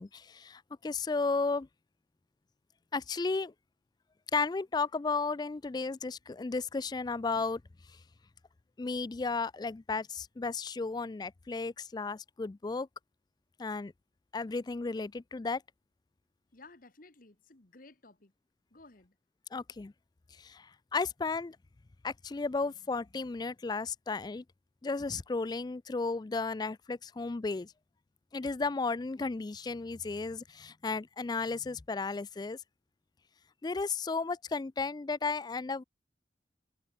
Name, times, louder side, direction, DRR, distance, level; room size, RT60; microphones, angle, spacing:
voice 1, 0.0-1.7 2.9-3.5 4.3-7.6 8.8-12.9 13.6-13.9 14.3-15.6 19.5-19.9 20.4-21.6 22.0-24.4 24.8-27.7 28.3-32.6 33.6-35.8, left 4 dB, 25° left, 0.3 m, -34 dB
voice 2, 16.5-18.3 18.7-19.1, left 3 dB, 50° left, 1.6 m, -56 dB
head